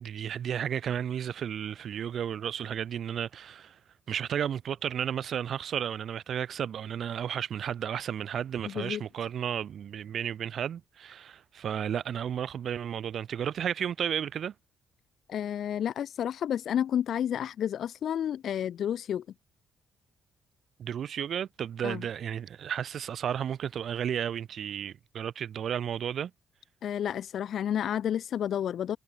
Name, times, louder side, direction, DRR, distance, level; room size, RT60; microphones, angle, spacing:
voice 1, 0.0-3.8 4.1-14.5 20.8-26.3, right 9 dB, 60° right, 0.5 m, -33 dB
voice 2, 8.6-9.0 15.3-19.2 21.8-22.1 26.8-29.0, left 9 dB, 65° left, 0.7 m, -30 dB
cardioid pair, 90°, 0 cm